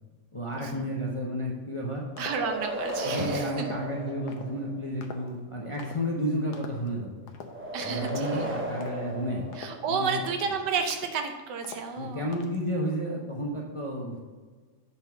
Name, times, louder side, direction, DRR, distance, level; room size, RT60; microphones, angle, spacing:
voice 1, 0.3-2.1 3.0-7.1 7.8-9.4 9.9-10.2 11.9-14.2, equal, 25° left, -2 dB, 0.7 m, -32 dB
sound 1, 2.1-4.9 7.5-10.2, right 1 dB, 15° right, 0.5 m, -35 dB
sound 2, 2.2-2.5 2.9-3.2 3.6-3.9 4.3-4.5 5.0-5.4 5.8-6.0 6.5-6.9 7.3-7.6 8.0-8.4 8.8-9.1 9.5-9.9 10.2-10.5 10.9-11.3 11.6-12.0 12.3-12.6, left 5 dB, 75° left, 1.3 m, -45 dB
voice 2, 2.2-3.7 7.7-8.5 9.6-12.3, right 5 dB, 85° right, 6 dB, 1.4 m, -31 dB
7.7 x 4.0 x 5.8 m, 1.4 s
omnidirectional pair, 1.8 m